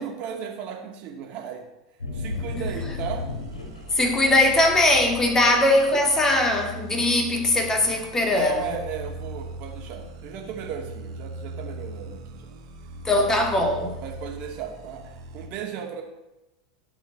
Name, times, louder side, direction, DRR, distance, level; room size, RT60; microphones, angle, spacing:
voice 1, 0.0-1.6 2.1-3.3 3.5-3.6 8.3-12.5 13.1-13.4 14.0-16.0, right 8 dB, 45° right, 2.6 m, -35 dB
sound 1, 2.0-4.0 4.4-4.9, left 3 dB, 80° left, 2.9 m, -33 dB
sound 2, 2.3-15.5, right 2 dB, 60° right, 1.7 m, -40 dB
voice 2, 3.9-8.7 13.0-14.0, left 2 dB, 15° left, 2.3 m, -21 dB
13.0 x 5.5 x 7.1 m
figure-of-eight pair, 90°, 3 cm